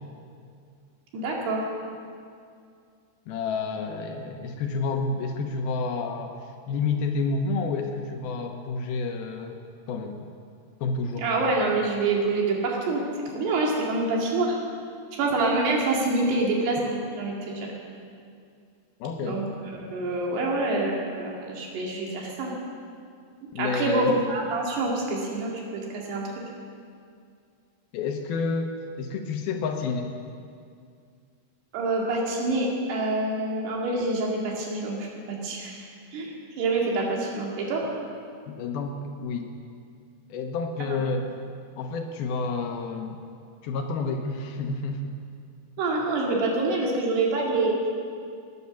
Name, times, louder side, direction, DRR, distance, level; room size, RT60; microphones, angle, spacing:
voice 1, 1.1-1.7 11.2-14.6 15.1-17.7 19.2-19.4 19.7-22.5 23.6-26.3 31.7-35.8 36.1-37.8 40.9-41.0 45.8-47.8, right 2 dB, 75° right, -2 dB, 4.2 m, -26 dB
voice 2, 3.3-6.4 6.7-9.6 9.9-10.3 10.8-11.3 19.0-19.4 23.5-24.2 27.9-28.7 29.0-30.1 38.6-39.5 40.3-41.3 41.8-43.2 43.6-45.2, left 4 dB, 75° left, 4 dB, 2.6 m, -29 dB
18.5 x 9.6 x 7.0 m, 2.3 s
omnidirectional pair, 4.7 m